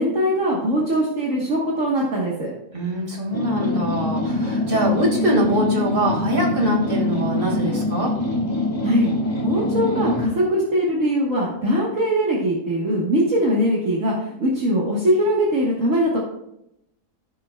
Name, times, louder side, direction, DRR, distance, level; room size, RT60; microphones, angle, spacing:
voice 1, 0.0-2.5 8.8-9.1 9.4-16.2, equal, 55° right, -4 dB, 1.9 m, -21 dB
voice 2, 2.7-8.1, right 1 dB, 35° right, -1 dB, 2.4 m, -23 dB
sound 1, 3.3-10.4, left 2 dB, 15° left, 1.8 m, -24 dB
15.5 x 6.0 x 2.4 m, 0.80 s
omnidirectional pair, 1.6 m